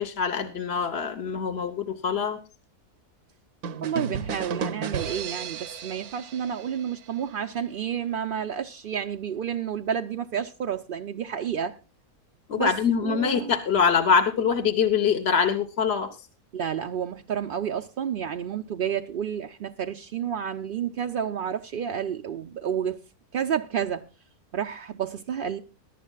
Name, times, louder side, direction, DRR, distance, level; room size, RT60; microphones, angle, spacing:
voice 1, 0.0-2.4 12.5-16.1, left 6 dB, 50° left, 1.2 m, -24 dB
sound 1, 3.6-7.4, right 6 dB, 80° right, 1.4 m, -34 dB
voice 2, 3.8-11.8 12.6-12.7 13.0-13.5 16.5-23.0 23.3-24.1 24.5-25.6, right 8 dB, 55° right, 0.6 m, -30 dB
21.5 x 11.0 x 2.3 m
omnidirectional pair, 1.6 m